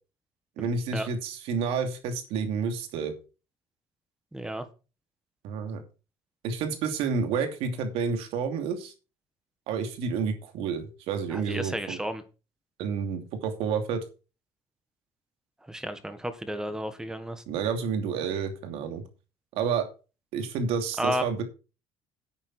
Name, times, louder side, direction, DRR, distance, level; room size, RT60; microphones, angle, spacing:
voice 1, 0.6-3.1 5.4-5.8 6.4-8.9 9.7-12.0 12.8-14.0 17.5-19.0 19.5-19.9 20.3-21.4, right 6 dB, 80° right, 6 dB, 2.8 m, -29 dB
voice 2, 4.3-4.6 11.3-12.2 15.6-17.4 21.0-21.2, equal, 5° right, 10 dB, 1.6 m, -32 dB
11.0 x 8.9 x 4.4 m, 0.32 s
cardioid pair, 130°, 10 cm